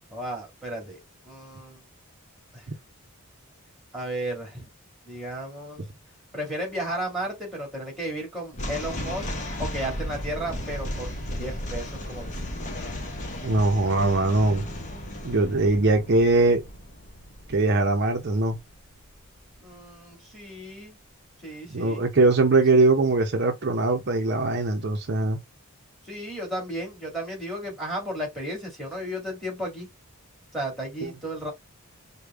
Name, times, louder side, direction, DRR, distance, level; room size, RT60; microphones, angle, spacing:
voice 1, 0.1-1.0 1.3-1.8 2.5-2.7 3.9-4.7 5.1-5.8 6.3-9.3 9.6-12.5 19.6-21.0 21.4-22.0 26.0-29.9 30.5-31.5, right 1 dB, ahead, 2.4 m, -34 dB
sound 1, 8.5-19.8, left 1 dB, 35° left, 0.9 m, -35 dB
voice 2, 13.4-14.6 15.2-16.6 17.5-18.6 21.7-25.4 31.0-31.1, right 2 dB, 50° right, 0.7 m, -21 dB
5.1 x 2.3 x 3.4 m
head